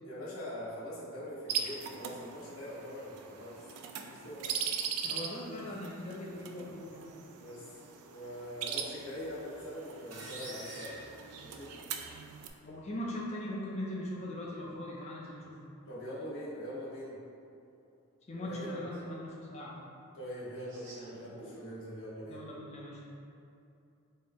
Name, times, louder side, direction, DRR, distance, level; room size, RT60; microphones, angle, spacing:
voice 1, 0.0-3.6 4.1-4.6 5.0-5.2 5.6-5.7 7.4-7.8 8.1-10.9 11.4-11.7 15.9-17.2 18.3-18.9 20.1-22.4, equal, 75° left, -8 dB, 0.9 m, -43 dB
Canary Moving In Cage, 1.5-12.5, right 7 dB, 85° right, 0.3 m, -41 dB
voice 2, 5.0-7.1 12.6-15.5 18.3-19.8 22.3-23.0, left 1 dB, 30° left, -4 dB, 0.5 m, -40 dB
sound 1, 10.1-12.1, right 1 dB, 70° right, 1.0 m, -47 dB
sound 2, 17.3-18.0 18.3-21.6, right 1 dB, 35° right, 0.8 m, -55 dB
4.2 x 2.1 x 3.5 m, 2.6 s
head